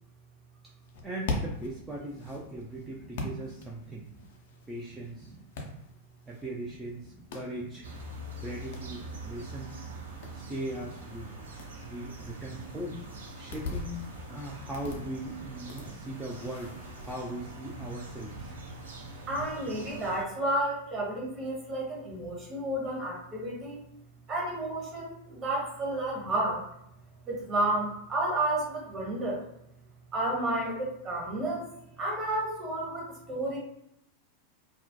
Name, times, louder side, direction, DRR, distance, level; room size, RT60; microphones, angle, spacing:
sound 1, 0.8-17.2, left 2 dB, 55° left, 0.4 m, -43 dB
voice 1, 1.0-4.1 4.7-5.3 6.3-7.9 8.4-9.8 10.3-11.3 11.9-13.0 13.3-14.0 14.3-16.7 17.0-18.5, right 1 dB, 10° right, -4 dB, 0.4 m, -39 dB
sound 2, 7.8-20.2, right 2 dB, 65° right, 0.5 m, -44 dB
voice 2, 19.3-23.8 24.3-26.6 27.2-29.4 30.1-31.7 32.0-33.6, right 1 dB, 30° right, -3 dB, 0.9 m, -31 dB
2.3 x 2.1 x 2.6 m, 0.76 s
figure-of-eight pair, 90°, 0 cm